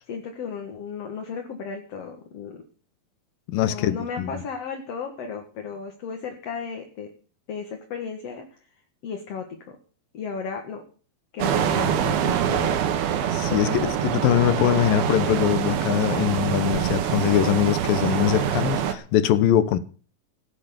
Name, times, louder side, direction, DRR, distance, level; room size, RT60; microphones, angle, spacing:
voice 1, 0.1-2.6 3.6-7.1 7.5-8.5 9.0-9.8 10.1-10.8 11.3-12.8 13.5-13.9, left 6 dB, 50° left, 2.2 m, -34 dB
voice 2, 3.5-4.4 13.3-19.8, left 11 dB, 75° left, 2.5 m, -22 dB
sound 1, 11.4-19.0, right 9 dB, 90° right, 3.3 m, -25 dB
16.5 x 8.3 x 6.8 m
omnidirectional pair, 4.3 m